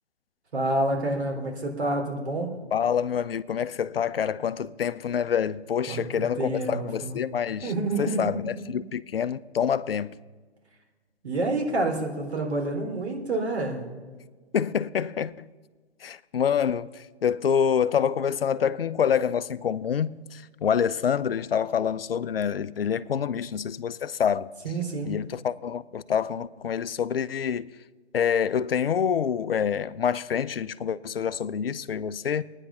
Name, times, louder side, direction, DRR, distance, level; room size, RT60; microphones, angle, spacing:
voice 1, 0.5-2.6 5.9-7.2 7.6-8.8 11.2-13.9 24.6-25.1, right 2 dB, 75° right, 3.9 m, -28 dB
voice 2, 2.7-7.7 8.0-10.2 14.5-15.5 16.0-24.5 25.0-27.7 28.1-32.4, left 8 dB, 60° left, 0.7 m, -27 dB
23.0 x 9.8 x 5.8 m
hypercardioid pair, 165°, 33 cm